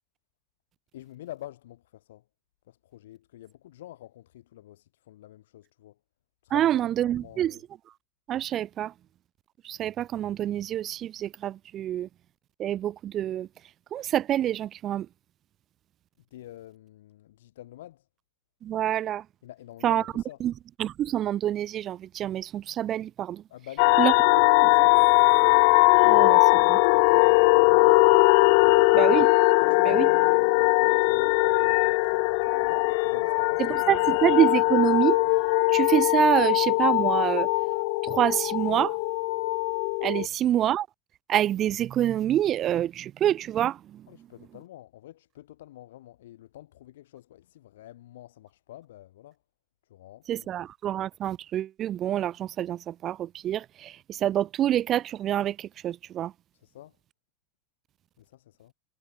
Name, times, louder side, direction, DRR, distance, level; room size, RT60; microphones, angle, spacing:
voice 1, 0.9-2.2 2.7-6.0 6.4-7.6 16.3-18.1 19.4-20.4 23.5-25.2 26.5-28.9 29.6-32.3 32.6-34.1 40.1-40.4 44.1-49.4 49.8-50.5 56.5-57.0 58.2-58.7, left 14 dB, 80° left, 3.8 m, -47 dB
voice 2, 6.5-7.6 8.3-8.9 9.6-12.1 12.6-13.5 13.9-15.1 18.6-19.2 19.8-20.1 20.4-20.5 20.8-23.4 24.0-24.1 26.0-26.8 28.9-29.3 29.8-30.1 33.6-35.2 35.7-37.5 38.0-39.0 40.0-40.9 41.3-44.0 50.3-56.3, right 11 dB, 40° right, 0.6 m, -26 dB
sound 1, 23.8-40.3, left 33 dB, 65° left, 0.3 m, -20 dB
supercardioid pair, 115°, 0 cm